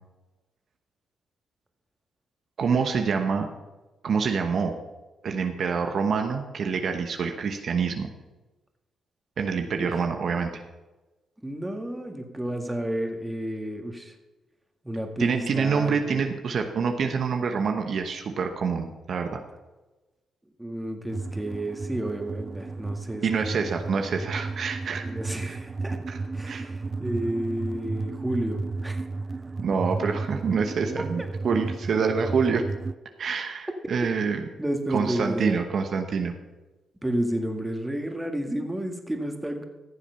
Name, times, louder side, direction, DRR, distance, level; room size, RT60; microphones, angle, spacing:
voice 1, 2.6-3.5 4.0-4.7 5.2-8.1 9.4-10.6 15.2-19.4 23.2-25.1 25.5-25.6 26.1-26.2 26.4-26.7 29.6-32.6 33.2-34.4 34.9-36.3, right 5 dB, 60° right, 5 dB, 1.0 m, -26 dB
voice 2, 9.7-10.0 11.4-14.2 14.8-16.3 20.6-23.5 25.0-26.0 26.3-29.0 31.0-31.3 34.6-35.6 37.0-39.6, right 1 dB, 10° right, 4 dB, 1.9 m, -31 dB
sound 1, 21.1-32.9, right 3 dB, 30° right, 0.3 m, -33 dB
14.5 x 7.2 x 5.7 m, 1.1 s
supercardioid pair, 65°, 0 cm